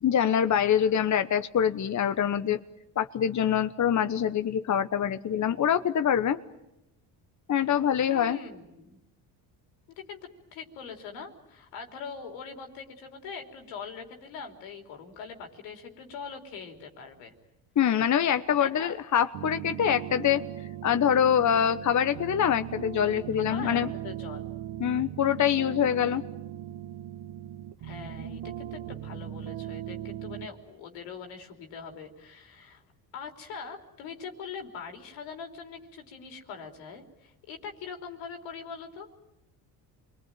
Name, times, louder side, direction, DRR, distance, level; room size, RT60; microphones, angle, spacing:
voice 1, 0.0-2.6 3.0-6.4 7.5-8.4 17.8-20.5 20.8-23.9 24.8-26.2, left 9 dB, 40° left, 10 dB, 1.1 m, -25 dB
voice 2, 8.1-9.0 10.1-10.2 10.5-17.3 18.6-19.0 22.6-22.7 23.4-24.5 27.8-32.8 33.1-39.1, left 5 dB, 90° left, 4 dB, 3.7 m, -42 dB
sound 1, 19.3-30.5, right 12 dB, 75° right, 1.5 m, -39 dB
27.5 x 21.5 x 9.0 m, 0.92 s
supercardioid pair, 75°, 45 cm